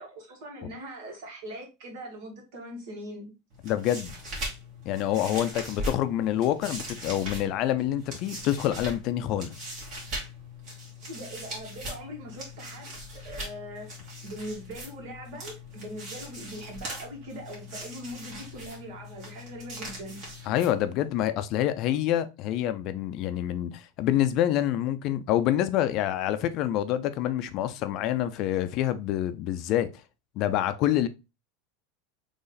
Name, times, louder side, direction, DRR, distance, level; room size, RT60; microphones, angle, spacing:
voice 1, 0.0-3.3 11.0-13.9 14.2-20.2, equal, 65° right, 2.2 m, -41 dB
sound 1, 3.5-21.1, equal, 45° right, 2.3 m, -40 dB
voice 2, 3.6-4.2 4.9-9.7 20.5-29.9 30.4-31.1, left 12 dB, 40° left, 0.4 m, -27 dB
3.9 x 3.1 x 4.0 m
supercardioid pair, 155°, 0 cm